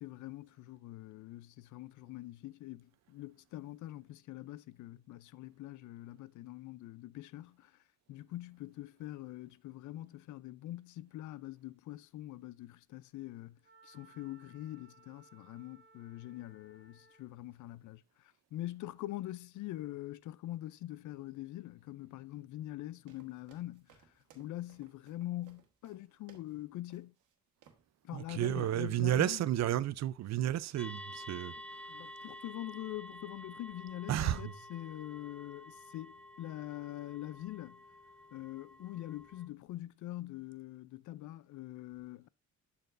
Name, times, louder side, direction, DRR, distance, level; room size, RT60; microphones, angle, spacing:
voice 1, 0.0-7.8 8.1-24.1 24.3-27.1 28.0-29.4 31.9-37.8 38.3-42.3, left 15 dB, 75° left, 0.5 m, -44 dB
Wind instrument woodwind instrument, 13.6-17.4, right 4 dB, 35° right, 1.2 m, -62 dB
sound 1, 23.1-26.6 26.9-27.3 27.6-27.9, right 8 dB, 90° right, 1.5 m, -64 dB
voice 2, 28.1-31.5 34.1-34.5, right 12 dB, 60° right, 0.5 m, -32 dB
sound 2, 30.8-39.5, left 1 dB, 5° left, 0.8 m, -50 dB
12.0 x 4.2 x 2.5 m
cardioid pair, 90°, 30 cm